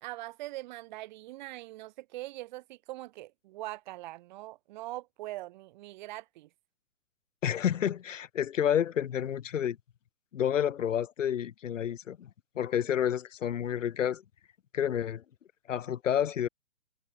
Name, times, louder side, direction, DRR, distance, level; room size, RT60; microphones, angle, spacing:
voice 1, 0.0-6.5, right 17 dB, 35° right, 1.3 m, -42 dB
voice 2, 7.4-9.8 10.3-12.3 12.5-14.2 14.7-15.2 15.7-16.5, left 9 dB, 65° left, 1.5 m, -29 dB
hypercardioid pair, 135°, 41 cm